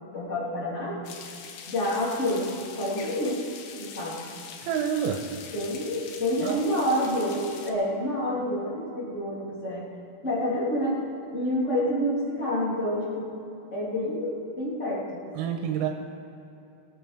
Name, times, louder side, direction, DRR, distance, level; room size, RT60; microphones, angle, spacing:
voice 1, 0.1-1.0 1.7-3.4 3.8-4.3 5.5-9.8 10.2-10.9 11.3-13.3 13.7-15.5, left 1 dB, 20° left, -6 dB, 2.5 m, -28 dB
sound 1, 1.0-7.7, left 6 dB, 75° left, 2.3 m, -43 dB
voice 2, 4.6-5.2 6.4-6.6 15.4-15.9, right 8 dB, 85° right, 2 dB, 3.4 m, -27 dB
23.0 x 8.4 x 5.1 m, 2.9 s
omnidirectional pair, 5.9 m